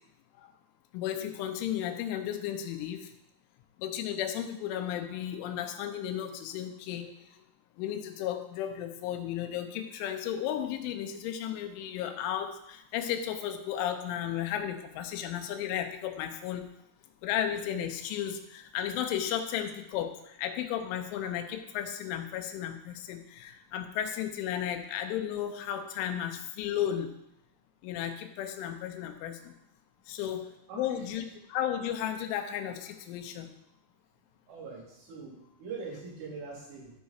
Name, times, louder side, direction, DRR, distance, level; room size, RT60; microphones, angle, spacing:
voice 1, 0.9-3.1 3.8-7.4 7.8-16.6 17.2-27.1 27.8-29.5 30.1-30.5 30.8-33.5, left 10 dB, 85° left, 6 dB, 3.3 m, -34 dB
voice 2, 34.5-36.9, right 4 dB, 80° right, -5 dB, 5.2 m, -42 dB
13.5 x 4.8 x 4.1 m, 0.79 s
omnidirectional pair, 5.5 m